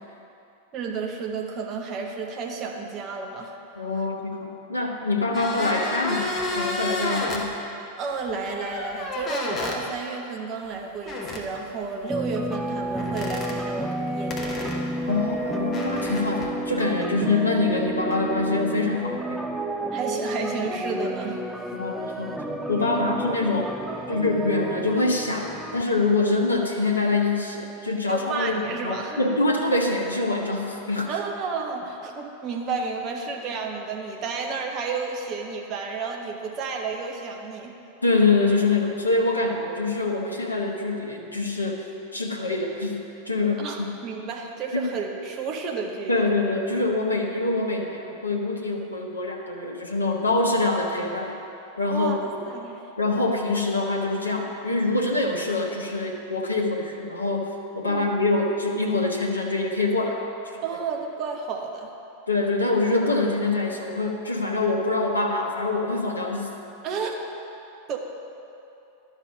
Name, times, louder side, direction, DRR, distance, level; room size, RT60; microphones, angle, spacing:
voice 1, 0.7-3.5 5.3-5.4 8.0-14.7 19.9-21.7 22.9-23.0 28.1-29.4 31.1-37.7 43.6-46.2 51.9-52.2 52.5-52.8 57.9-58.1 60.6-61.9 66.8-67.2 67.9-68.0, right 4 dB, 35° right, 1 dB, 1.1 m, -31 dB
voice 2, 3.8-7.5 15.1-19.5 21.7-23.7 24.1-31.1 38.0-41.8 42.1-43.9 44.7-44.8 46.1-51.3 51.8-52.1 53.0-60.2 62.3-66.5, left 3 dB, 80° left, 1 dB, 0.9 m, -25 dB
sound 1, 5.3-7.4 8.5-9.8 11.1-11.5 13.0-13.6 14.3-16.5, left 2 dB, 25° left, 1.2 m, -31 dB
sound 2, 12.1-25.8, right 1 dB, 5° right, 0.4 m, -31 dB
12.0 x 5.4 x 5.2 m, 2.8 s
figure-of-eight pair, 90°, 0 cm